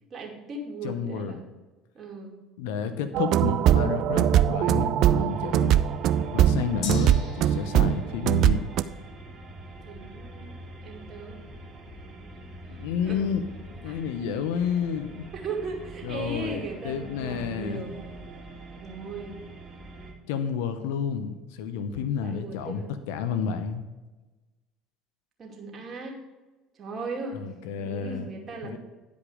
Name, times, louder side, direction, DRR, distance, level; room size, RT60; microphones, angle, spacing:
voice 1, 0.1-1.4 1.9-2.3 9.8-10.5 10.8-11.4 13.0-13.2 13.9-14.0 15.3-18.2 18.8-19.3 21.9-22.9 25.4-26.2 26.7-27.4 27.8-28.8, right 3 dB, 40° right, 0 dB, 2.5 m, -37 dB
voice 2, 0.8-1.4 2.6-5.7 6.3-8.7 12.8-13.4 13.7-15.2 16.0-17.8 20.3-23.8 27.3-28.3 28.6-28.8, left 7 dB, 75° left, 10 dB, 0.8 m, -30 dB
sound 1, 3.1-8.8, right 10 dB, 60° right, 0.4 m, -21 dB
sound 2, 5.3-20.1, right 1 dB, 25° right, 2.6 m, -43 dB
Gong, 6.8-14.6 14.9-15.0, left 6 dB, 60° left, 1.1 m, -47 dB
10.5 x 5.2 x 4.9 m, 1.2 s
hypercardioid pair, 70°, 0 cm